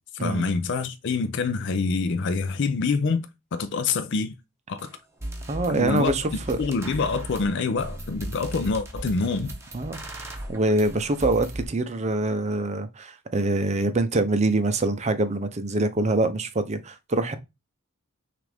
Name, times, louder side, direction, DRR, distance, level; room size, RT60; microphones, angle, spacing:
voice 1, 0.2-3.3 3.5-4.3 4.7-4.9 5.7-6.1 6.6-9.5, left 4 dB, 55° left, 0.5 m, -26 dB
sound 1, 4.8-4.9 5.2-11.6, right 1 dB, 10° right, 0.8 m, -37 dB
voice 2, 5.5-6.6 9.7-17.4, right 2 dB, 30° right, 0.5 m, -25 dB
6.1 x 2.5 x 3.4 m
head